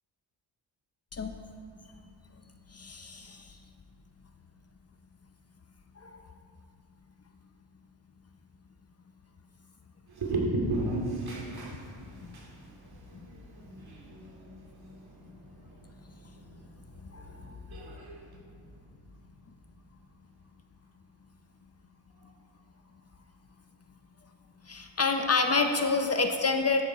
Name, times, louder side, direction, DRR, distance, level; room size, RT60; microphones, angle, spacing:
voice 1, 2.7-3.6 6.0-6.2 17.0-17.5 24.6-26.8, left 4 dB, 35° left, 5 dB, 0.7 m, -28 dB
voice 2, 10.1-18.3, right 2 dB, 55° right, -2 dB, 2.6 m, -37 dB
13.5 x 7.0 x 4.3 m, 2.4 s
cardioid pair, 90°, 45 cm